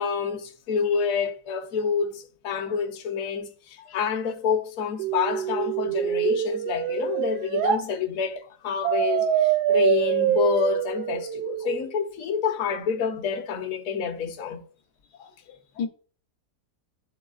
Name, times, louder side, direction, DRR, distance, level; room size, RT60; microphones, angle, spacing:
voice 1, 0.0-14.6, left 6 dB, 60° left, 1.0 m, -28 dB
sound 1, 5.0-7.8 8.8-11.8, right 10 dB, 80° right, 1.2 m, -25 dB
voice 2, 15.2-15.9, left 6 dB, 80° left, 1.4 m, -36 dB
11.5 x 3.9 x 2.4 m
omnidirectional pair, 1.8 m